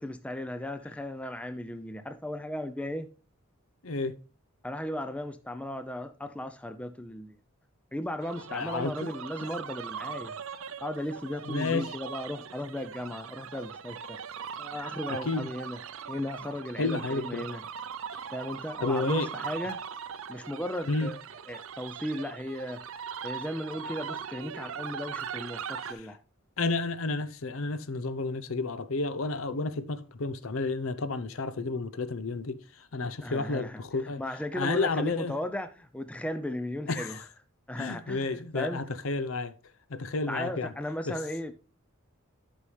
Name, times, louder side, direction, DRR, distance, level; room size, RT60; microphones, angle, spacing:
voice 1, 0.0-3.1 4.6-7.4 7.9-10.4 10.8-14.2 14.6-15.8 16.1-17.6 18.3-19.8 20.3-21.2 21.5-22.8 23.2-26.2 33.2-37.2 37.7-38.9 40.3-41.5, left 1 dB, 5° left, 0.4 m, -36 dB
voice 2, 3.8-4.2 8.5-9.1 11.4-11.9 15.1-15.5 16.8-17.5 18.1-18.2 18.8-19.3 20.9-21.1 25.8-26.1 26.6-34.2 34.5-35.3 36.9-37.2 37.8-39.5 39.9-40.7 41.1-41.2, left 3 dB, 70° left, 0.7 m, -31 dB
sound 1, 8.2-25.9, right 7 dB, 65° right, 0.5 m, -40 dB
11.5 x 5.5 x 3.2 m
head